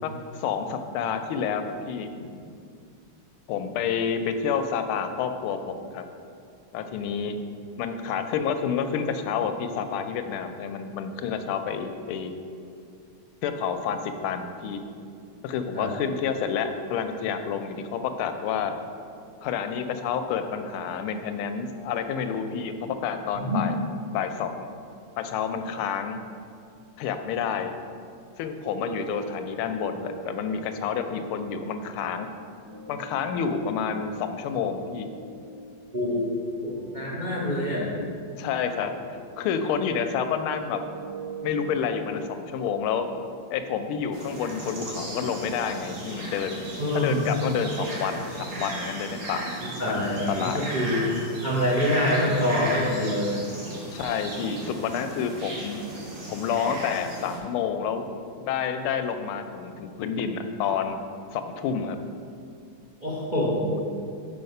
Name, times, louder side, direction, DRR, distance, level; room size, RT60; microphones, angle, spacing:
voice 1, 0.0-2.1 3.5-6.0 6.7-7.4 7.8-12.3 13.4-14.8 15.4-18.7 19.4-23.8 24.1-24.7 25.2-26.2 27.0-27.7 28.4-32.3 32.9-35.1 38.4-38.9 39.4-40.8 41.4-43.1 43.5-46.6 46.9-49.4 49.9-50.6 53.9-55.8 56.3-58.1 58.4-61.0 61.3-62.0, left 7 dB, 90° left, 8 dB, 1.5 m, -29 dB
sound 1, 28.7-44.7, right 2 dB, 85° right, 2.8 m, -43 dB
voice 2, 35.9-36.2 36.6-37.9 46.8-47.3 49.8-51.0 51.4-53.4 63.0-63.8, left 1 dB, 40° right, -5 dB, 0.6 m, -26 dB
sound 2, 44.1-57.4, right 1 dB, 70° right, 2.1 m, -36 dB
5.6 x 5.4 x 5.3 m, 2.4 s
omnidirectional pair, 2.3 m